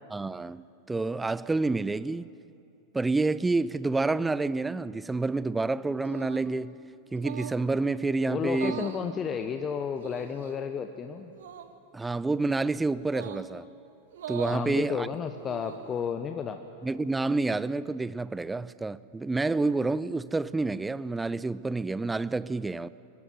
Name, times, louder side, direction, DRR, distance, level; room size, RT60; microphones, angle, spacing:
voice 1, 0.1-2.3 2.9-6.8 7.1-8.8 11.9-13.7 14.3-15.1 16.8-22.9, right 3 dB, 10° right, 0.5 m, -28 dB
sound 1, 6.0-6.5 7.2-7.6 8.5-9.0 10.0-10.5 11.3-11.7 13.1-13.5 14.1-14.6 15.3-15.9, right 9 dB, 60° right, 1.6 m, -41 dB
voice 2, 8.3-11.3 14.5-16.6, left 7 dB, 25° left, 1.1 m, -32 dB
22.0 x 21.5 x 9.2 m
figure-of-eight pair, 90°, 0 cm